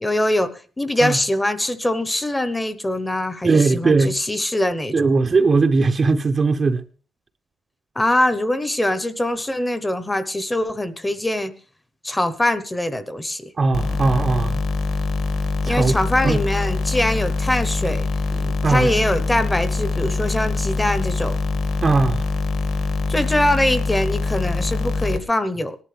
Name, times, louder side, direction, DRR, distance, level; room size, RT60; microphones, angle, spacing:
voice 1, 0.0-5.1 8.0-11.5 12.0-13.5 15.6-18.1 18.7-21.4 23.1-25.8, left 1 dB, 10° left, 0.9 m, -23 dB
voice 2, 3.4-4.2 4.9-6.8 13.6-14.6 15.7-16.0 16.2-16.4 18.4-18.9 21.8-22.2, right 4 dB, 25° right, 0.7 m, -19 dB
sound 1, 13.7-25.2, left 3 dB, 55° left, 2.1 m, -24 dB
19.5 x 11.5 x 3.3 m
cardioid pair, 175°, 0 cm